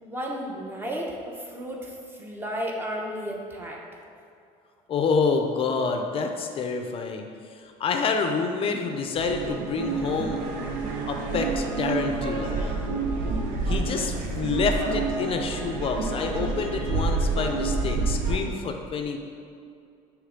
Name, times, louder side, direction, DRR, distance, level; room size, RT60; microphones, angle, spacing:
voice 1, 0.0-3.8, equal, 15° right, -1 dB, 0.9 m, -33 dB
voice 2, 4.9-7.3 7.6-10.4 11.1-12.8 13.7-19.2, left 4 dB, 40° left, 5 dB, 0.5 m, -28 dB
sound 1, 9.2-18.4, right 3 dB, 90° right, 0.7 m, -28 dB
6.6 x 3.1 x 5.1 m, 2.4 s
cardioid pair, 130°, 14 cm